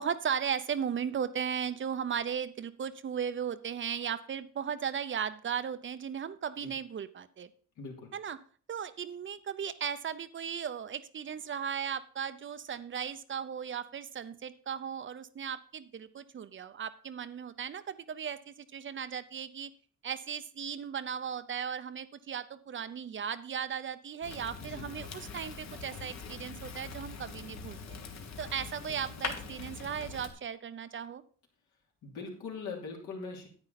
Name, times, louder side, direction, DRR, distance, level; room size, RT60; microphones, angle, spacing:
voice 1, 0.0-7.5 8.1-8.4 8.7-19.7 20.0-28.0 28.4-31.2, right 7 dB, 40° right, 13 dB, 0.6 m, -36 dB
voice 2, 7.8-8.1 24.6-24.9 32.0-33.5, left 4 dB, 75° left, 0 dB, 3.1 m, -41 dB
Fire, 24.2-30.3, left 5 dB, 60° left, 1.6 m, -42 dB
9.8 x 8.8 x 4.0 m, 0.44 s
cardioid pair, 90°, 30 cm